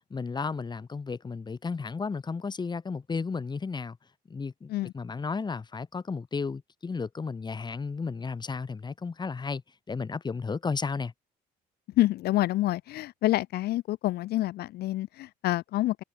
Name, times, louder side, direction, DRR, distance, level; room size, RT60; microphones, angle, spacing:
voice 1, 0.1-4.0 4.3-9.6 9.9-11.1, left 4 dB, 25° left, 3.1 m, -33 dB
voice 2, 12.0-16.0, left 16 dB, 70° left, 0.7 m, -27 dB
cardioid pair, 110°, 17 cm